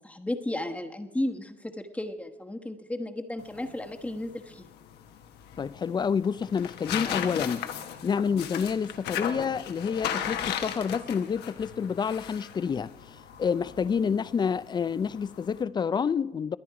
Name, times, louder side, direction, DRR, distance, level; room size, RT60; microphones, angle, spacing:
voice 1, 0.0-4.7, left 1 dB, 10° left, 1.1 m, -34 dB
sound 1, 3.4-15.6, left 9 dB, 75° left, 1.2 m, -37 dB
voice 2, 5.6-7.7 8.0-12.9 13.4-16.6, left 6 dB, 25° left, 0.4 m, -28 dB
20.5 x 9.4 x 4.8 m
cardioid pair, 110°, 17 cm